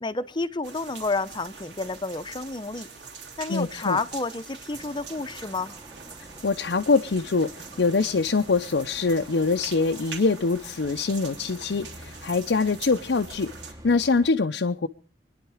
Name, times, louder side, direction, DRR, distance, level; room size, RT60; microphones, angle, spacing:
voice 1, 0.0-2.9 3.4-5.7, left 3 dB, 25° left, 0.7 m, -30 dB
sound 1, 0.6-13.7, right 5 dB, 75° right, 3.1 m, -44 dB
voice 2, 3.5-4.0 6.4-7.5 7.8-13.5 13.8-14.9, left 4 dB, 75° left, 0.6 m, -24 dB
sound 2, 4.7-14.3, right 1 dB, 20° right, 1.4 m, -47 dB
25.5 x 10.5 x 4.8 m
head